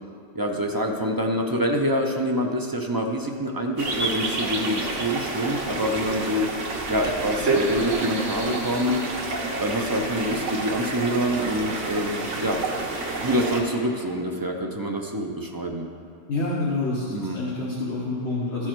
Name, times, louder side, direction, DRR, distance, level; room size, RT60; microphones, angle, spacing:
voice 1, 0.3-6.5 6.9-9.0 9.6-12.6 13.2-15.9 17.1-17.4, equal, 35° right, 1 dB, 0.3 m, -26 dB
sound 1, 3.8-13.6, right 2 dB, 75° right, 1.3 m, -29 dB
voice 2, 16.3-18.7, left 2 dB, 65° left, -6 dB, 1.4 m, -27 dB
13.5 x 4.6 x 4.5 m, 2.3 s
omnidirectional pair, 1.2 m